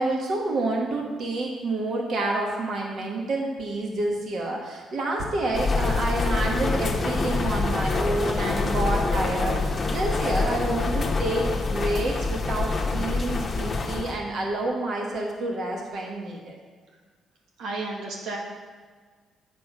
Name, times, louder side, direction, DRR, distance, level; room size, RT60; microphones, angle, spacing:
voice 1, 0.0-16.5, right 2 dB, 60° right, 0 dB, 1.3 m, -28 dB
sound 1, 5.5-14.2, left 3 dB, 35° left, 1.0 m, -26 dB
voice 2, 17.6-18.4, right 3 dB, 85° right, -1 dB, 1.4 m, -32 dB
8.0 x 6.0 x 4.9 m, 1.5 s
cardioid pair, 90°, 0 cm